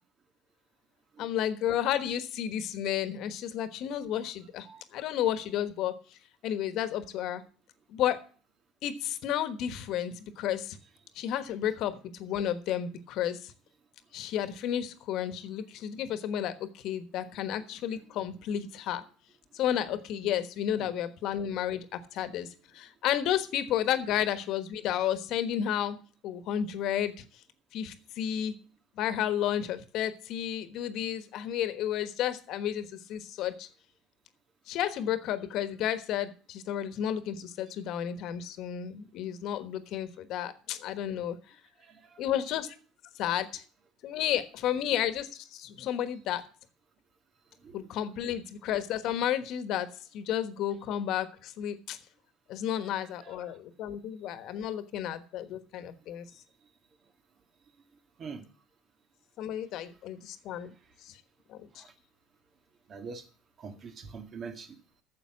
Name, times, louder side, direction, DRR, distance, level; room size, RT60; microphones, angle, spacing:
voice 1, 1.2-4.7 4.9-6.0 6.4-7.4 7.9-8.2 8.8-10.8 11.1-13.5 14.1-19.0 19.5-22.5 22.7-26.0 26.2-27.2 27.7-28.5 29.0-33.7 34.7-41.6 42.2-42.8 43.1-43.6 44.0-46.4 47.7-52.0 52.5-56.3 59.4-60.7 61.0-61.2 61.5-61.8, left 10 dB, 65° left, 11 dB, 1.3 m, -32 dB
voice 2, 41.8-42.2 47.6-47.8 52.8-52.9 53.2-53.6 58.2-58.5 59.8-59.9 61.7-61.9 62.9-63.3 63.6-64.8, right 5 dB, 40° right, 8 dB, 1.7 m, -45 dB
9.6 x 7.1 x 7.3 m, 0.41 s
supercardioid pair, 80°, 0 cm